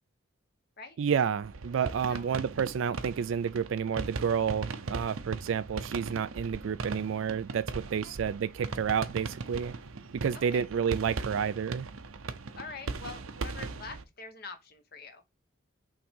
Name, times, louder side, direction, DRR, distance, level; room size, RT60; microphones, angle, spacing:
voice 1, 1.0-9.7 10.1-11.9, right 7 dB, 70° right, 0.3 m, -30 dB
sound 1, 1.4-14.0, right 3 dB, 85° right, 0.8 m, -39 dB
voice 2, 10.3-10.6 12.6-15.2, left 4 dB, 45° left, 1.1 m, -45 dB
5.8 x 3.7 x 5.3 m
head